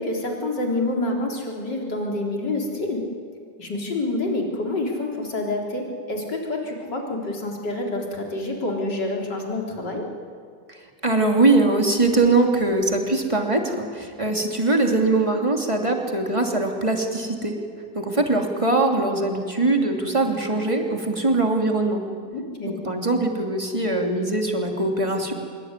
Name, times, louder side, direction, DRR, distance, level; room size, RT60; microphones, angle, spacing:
voice 1, 0.0-3.0 3.6-10.0 22.3-22.8, left 2 dB, 65° left, 0 dB, 4.6 m, -27 dB
voice 2, 11.0-17.5 17.9-22.0 22.7-25.3, right 2 dB, 15° right, 2 dB, 3.0 m, -22 dB
25.5 x 23.5 x 9.9 m, 2.1 s
omnidirectional pair, 2.0 m